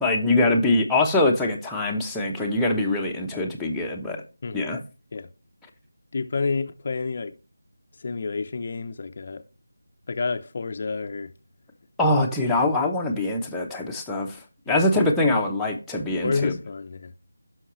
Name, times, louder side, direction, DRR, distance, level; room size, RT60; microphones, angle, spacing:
voice 1, 0.0-4.2 4.5-4.8 12.0-14.4 14.7-16.5, left 2 dB, 5° left, 0.9 m, -23 dB
voice 2, 4.4-4.7 5.1-5.3 6.1-7.3 8.0-9.4 10.1-11.3 14.7-14.9 16.2-17.1, left 4 dB, 40° left, 0.7 m, -29 dB
16.5 x 5.9 x 3.1 m
figure-of-eight pair, 165°, 0 cm